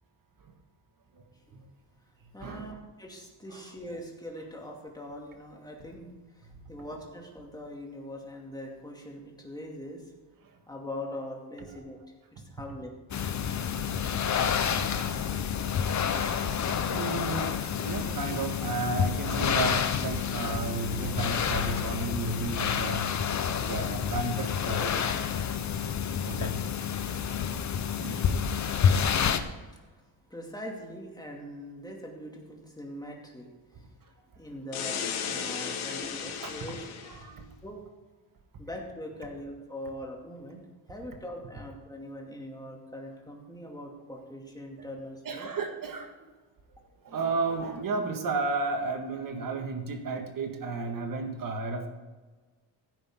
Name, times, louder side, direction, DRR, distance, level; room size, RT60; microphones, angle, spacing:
voice 1, 2.3-10.0 10.7-12.0 12.3-12.9 29.7-29.9 30.3-33.9 34.4-36.9 37.6-37.8 38.6-40.6 40.9-45.5, left 1 dB, 10° left, 0 dB, 2.4 m, -42 dB
sound 1, 13.1-29.4, left 7 dB, 35° left, 0.8 m, -29 dB
voice 2, 14.5-15.0 16.1-23.2 23.5-25.0 26.2-26.7 28.0-28.3 36.4-36.6 37.1-37.5 45.3-46.1 47.0-51.9, right 3 dB, 45° right, 5 dB, 1.8 m, -33 dB
sound 2, 34.7-37.2, left 7 dB, 90° left, 1.9 m, -35 dB
15.5 x 9.5 x 3.7 m, 1.3 s
cardioid pair, 130°, 47 cm